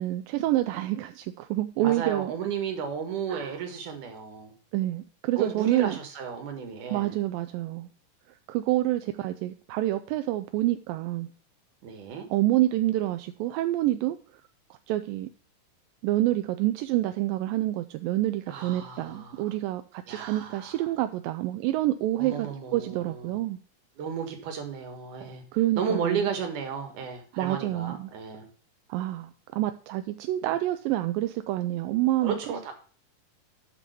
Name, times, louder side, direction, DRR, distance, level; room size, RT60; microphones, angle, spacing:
voice 1, 0.0-2.3 3.3-3.6 4.7-5.9 6.9-7.9 8.5-11.3 12.3-14.2 14.9-15.3 16.0-23.6 25.5-26.2 27.4-28.1 28.9-32.4, right 15 dB, 85° right, 2.3 m, -27 dB
voice 2, 1.8-4.5 5.4-7.2 11.8-12.3 18.5-19.5 20.1-20.9 22.2-23.4 24.0-25.4 25.8-28.5 32.2-32.7, right 6 dB, 65° right, 3.1 m, -33 dB
7.0 x 6.2 x 6.7 m
omnidirectional pair, 3.9 m